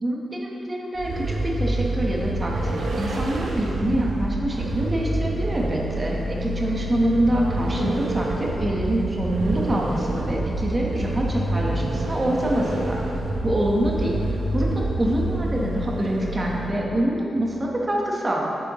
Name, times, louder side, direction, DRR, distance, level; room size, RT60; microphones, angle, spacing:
voice 1, 0.0-13.0 13.4-14.1 14.5-18.4, right 1 dB, 25° right, -2 dB, 1.2 m, -25 dB
Vehicle, 0.9-16.9, right 1 dB, 75° right, 0.8 m, -27 dB
9.0 x 6.8 x 3.1 m, 3.0 s
wide cardioid pair, 110°, 0 cm